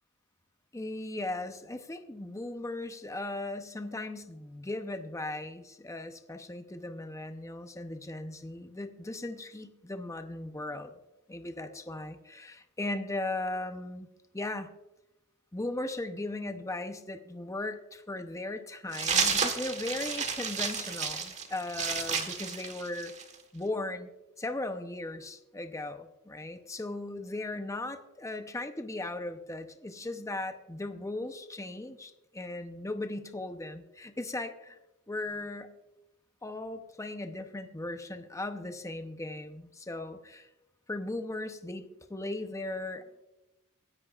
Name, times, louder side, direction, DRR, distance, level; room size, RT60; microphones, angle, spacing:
voice 1, 0.7-10.9 11.3-14.1 14.3-14.7 15.5-23.1 23.5-24.1 24.4-34.8 35.1-35.7 36.4-40.5 40.9-43.2, left 2 dB, 15° left, 7 dB, 0.7 m, -37 dB
sound 1, 18.9-23.4, right 5 dB, 35° right, 1.3 m, -31 dB
24.5 x 10.5 x 2.4 m, 0.98 s
head